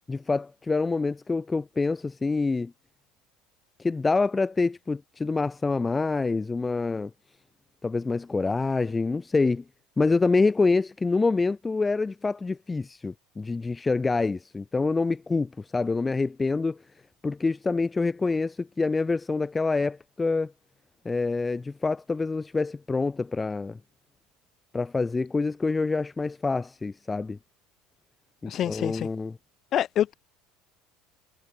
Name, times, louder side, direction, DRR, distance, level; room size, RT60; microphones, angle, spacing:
voice 1, 0.0-2.7 3.8-7.1 7.8-9.6 10.0-16.8 17.2-20.5 21.0-23.8 24.7-27.4 28.4-29.4, left 3 dB, 15° left, 0.5 m, -26 dB
voice 2, 28.4-29.1 29.7-30.1, left 11 dB, 40° left, 1.4 m, -26 dB
supercardioid pair, 130°, 0 cm